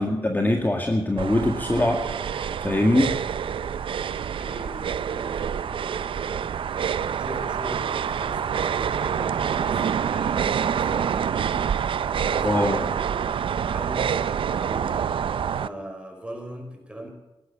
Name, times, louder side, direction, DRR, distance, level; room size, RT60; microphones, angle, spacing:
voice 1, 0.0-3.1 12.4-12.9, left 1 dB, 20° left, 2 dB, 2.0 m, -23 dB
sound 1, 1.2-15.7, right 8 dB, 85° right, 0.4 m, -27 dB
voice 2, 4.0-6.5 7.0-11.6 12.3-15.3 15.6-17.1, equal, 10° right, 4 dB, 5.2 m, -40 dB
16.0 x 12.0 x 7.5 m, 0.96 s
cardioid pair, 60°, 9 cm